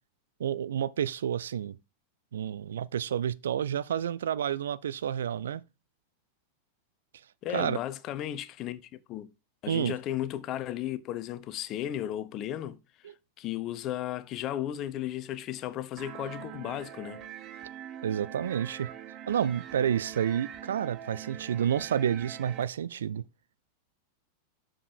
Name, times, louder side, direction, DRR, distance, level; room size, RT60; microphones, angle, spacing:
voice 1, 0.4-1.8 2.3-5.6 7.5-7.8 9.7-9.9 18.0-18.9 19.3-23.2, right 9 dB, 65° right, 0.4 m, -29 dB
voice 2, 7.4-9.3 9.6-12.8 13.4-17.2, left 12 dB, 35° left, 0.7 m, -35 dB
sound 1, 16.0-22.6, right 10 dB, 35° right, 0.8 m, -43 dB
7.3 x 5.0 x 4.6 m
figure-of-eight pair, 90°, 0 cm